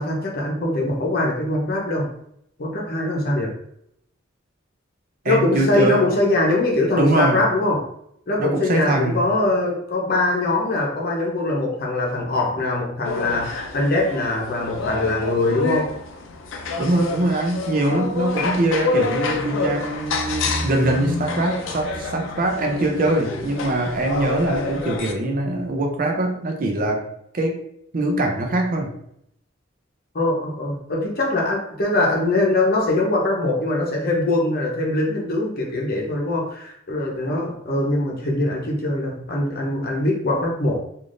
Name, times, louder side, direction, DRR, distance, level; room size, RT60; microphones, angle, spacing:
voice 1, 0.0-2.1 2.6-3.5 5.2-7.8 8.3-15.9 30.1-40.8, left 2 dB, 50° left, -1 dB, 0.8 m, -22 dB
voice 2, 5.2-6.1 6.9-7.4 8.4-9.2 16.8-27.0 27.3-27.5 27.9-28.9, right 1 dB, 45° right, 2 dB, 0.5 m, -22 dB
sound 1, 13.0-25.1, left 3 dB, 75° left, 0.4 m, -28 dB
3.4 x 2.5 x 2.5 m, 0.72 s
head